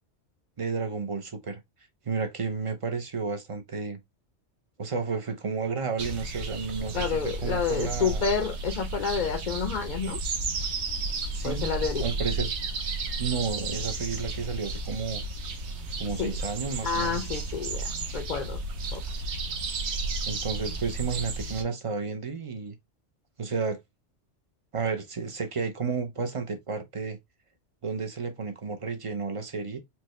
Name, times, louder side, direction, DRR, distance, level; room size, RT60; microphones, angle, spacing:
voice 1, 0.6-1.6 2.1-4.0 4.8-8.2 11.3-12.5 13.2-15.2 16.0-17.2 20.2-22.8 23.4-23.8 24.7-27.2 27.8-29.8, right 5 dB, 40° right, 0.5 m, -32 dB
sound 1, 6.0-21.6, right 3 dB, 70° right, 1.0 m, -33 dB
voice 2, 6.9-10.2 11.4-12.0 16.2-16.4 16.8-18.6 18.9-19.0, left 6 dB, 50° left, 0.6 m, -29 dB
4.5 x 2.2 x 3.0 m
omnidirectional pair, 1.2 m